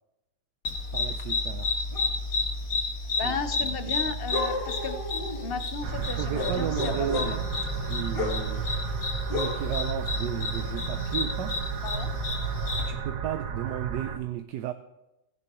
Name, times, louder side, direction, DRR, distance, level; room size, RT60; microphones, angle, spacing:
sound 1, 0.6-12.9, left 2 dB, 70° left, 2.5 m, -30 dB
voice 1, 0.9-1.8 3.2-4.2 6.0-7.5 7.9-8.7 9.3-11.6 12.9-14.7, right 10 dB, 80° right, 10 dB, 1.2 m, -34 dB
voice 2, 3.2-5.0 5.4-7.4 11.8-12.1, left 5 dB, 45° left, 9 dB, 0.8 m, -34 dB
sound 2, 5.8-14.2, right 7 dB, 60° right, 1.1 m, -33 dB
17.0 x 16.5 x 3.0 m, 0.95 s
omnidirectional pair, 1.8 m